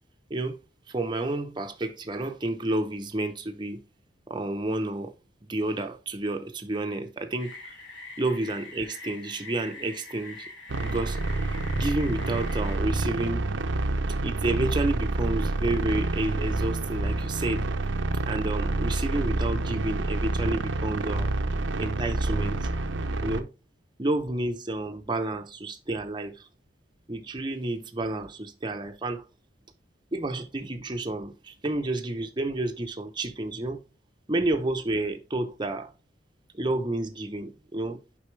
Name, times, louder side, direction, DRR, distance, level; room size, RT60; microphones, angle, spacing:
voice 1, 0.9-3.9 4.3-5.1 5.5-7.8 8.2-10.5 10.8-11.2 11.7-13.5 14.2-17.7 18.3-21.3 21.8-22.7 23.2-23.5 24.0-26.5 27.1-29.3 30.1-33.8 34.3-35.9 36.5-38.0, right 2 dB, 25° right, 0.7 m, -30 dB
sound 1, 7.4-12.8, left 3 dB, 75° left, 2.4 m, -44 dB
sound 2, 10.7-23.4, right 2 dB, 75° right, 0.6 m, -28 dB
6.5 x 5.4 x 3.2 m
head